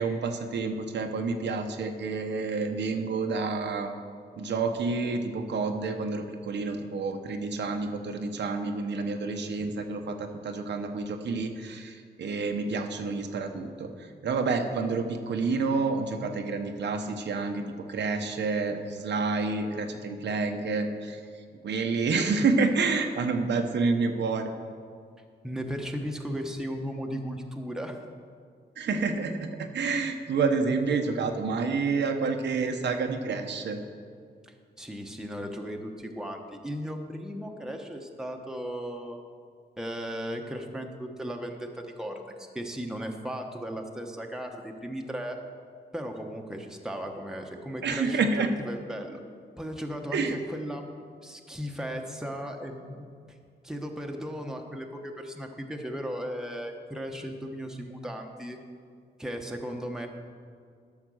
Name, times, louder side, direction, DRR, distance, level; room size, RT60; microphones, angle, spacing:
voice 1, 0.0-3.9 4.4-17.6 17.9-21.2 21.6-24.5 28.8-33.8 47.8-48.5 50.1-50.4, right 4 dB, 80° right, 5 dB, 1.0 m, -29 dB
voice 2, 25.4-28.0 34.4-39.2 39.8-45.4 45.9-49.2 49.6-50.9 51.2-53.0 53.6-58.6 59.2-60.1, equal, 5° right, 2 dB, 1.1 m, -36 dB
12.0 x 6.6 x 6.4 m, 2.2 s
wide cardioid pair, 105°, 18 cm